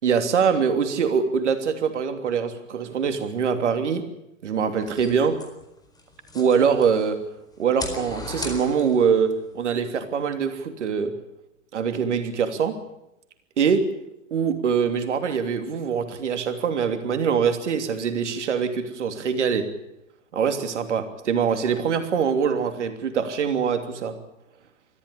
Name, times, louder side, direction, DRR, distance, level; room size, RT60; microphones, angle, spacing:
voice 1, 0.0-4.0 4.4-5.4 6.3-7.2 7.6-11.1 11.7-12.7 13.6-13.8 14.3-19.6 20.3-24.2, right 6 dB, 60° right, 7 dB, 3.1 m, -23 dB
sound 1, 4.8-7.1 7.5-9.2, left 2 dB, 10° left, 4.4 m, -37 dB
24.0 x 14.5 x 10.0 m, 0.88 s
figure-of-eight pair, 110°, 39 cm